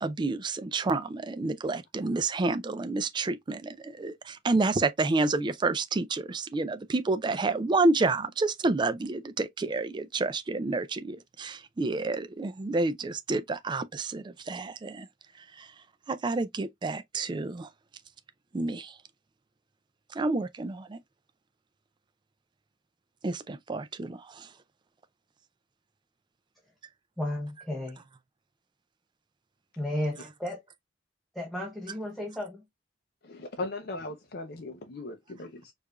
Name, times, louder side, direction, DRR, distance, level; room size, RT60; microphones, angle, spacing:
voice 1, 0.0-15.1 15.6-15.7 16.1-17.7 18.5-19.0 20.1-21.0 23.2-24.5, right 3 dB, 25° right, 0.3 m, -29 dB
voice 2, 27.2-28.0 29.8-30.6 31.3-32.6, left 1 dB, ahead, 0.8 m, -33 dB
voice 3, 33.2-35.7, left 2 dB, 55° left, 0.5 m, -38 dB
4.6 x 2.5 x 2.3 m
head